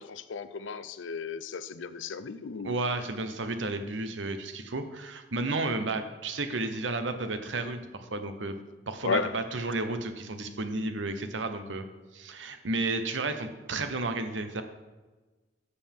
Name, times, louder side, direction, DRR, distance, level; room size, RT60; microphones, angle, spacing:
voice 1, 0.0-2.8 9.0-9.4, left 5 dB, 85° left, 0.5 m, -34 dB
voice 2, 2.6-8.6 8.9-11.9 12.1-14.6, right 2 dB, 80° right, 0.9 m, -32 dB
13.0 x 6.9 x 3.6 m
head